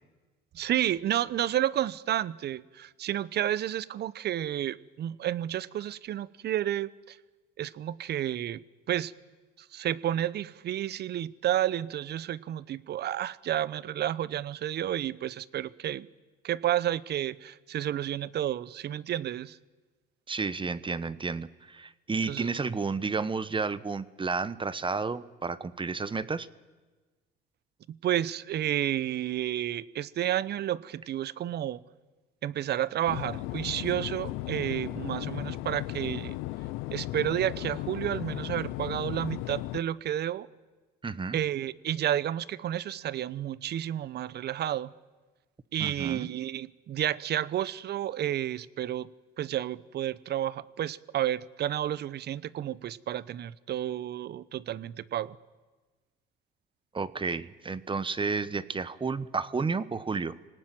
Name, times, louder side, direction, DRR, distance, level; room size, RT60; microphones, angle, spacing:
voice 1, 0.5-7.2 7.6-8.6 8.9-9.1 9.7-16.1 16.4-19.6 22.3-22.5 27.9-31.8 32.4-36.4 36.9-40.5 41.3-44.9 45.7-49.1 49.4-55.4, right 11 dB, 50° right, 19 dB, 0.9 m, -31 dB
voice 2, 20.3-26.5 41.0-41.4 45.8-46.3 56.9-60.4, right 4 dB, 25° right, 15 dB, 1.1 m, -31 dB
sound 1, 33.1-39.8, left 18 dB, 75° left, 0.7 m, -36 dB
26.5 x 18.5 x 9.2 m, 1.3 s
supercardioid pair, 70°, 21 cm